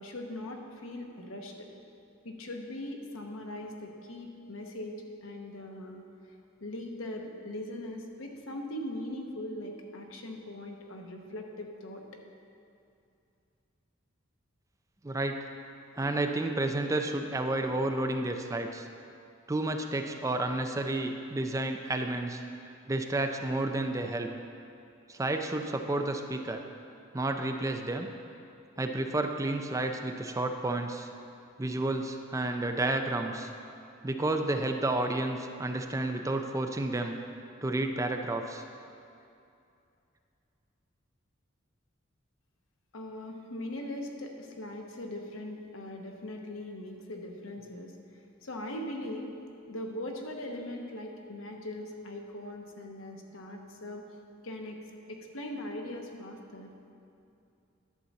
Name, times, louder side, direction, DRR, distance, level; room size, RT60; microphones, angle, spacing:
voice 1, 0.0-1.7 2.2-5.0 5.2-6.0 6.6-12.2 42.9-47.9 48.4-49.3 49.7-54.0 54.4-54.8 55.1-56.9, left 1 dB, 90° left, 2 dB, 1.0 m, -40 dB
voice 2, 15.0-15.4 16.0-18.8 19.5-22.4 22.9-24.3 25.1-26.6 27.1-28.1 28.8-31.1 31.6-33.5 34.0-37.1 37.6-38.6, right 2 dB, 15° right, 5 dB, 0.4 m, -31 dB
11.0 x 4.2 x 7.1 m, 2.6 s
head